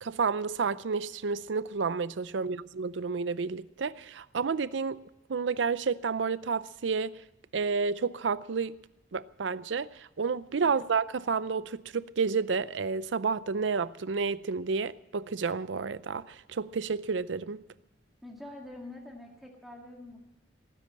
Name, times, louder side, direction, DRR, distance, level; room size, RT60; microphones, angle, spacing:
voice 1, 0.0-5.0 5.3-7.2 7.5-8.8 9.1-17.6, right 5 dB, 85° right, 0.5 m, -30 dB
voice 2, 18.2-20.2, left 1 dB, ahead, 2.0 m, -45 dB
18.0 x 10.0 x 7.5 m
head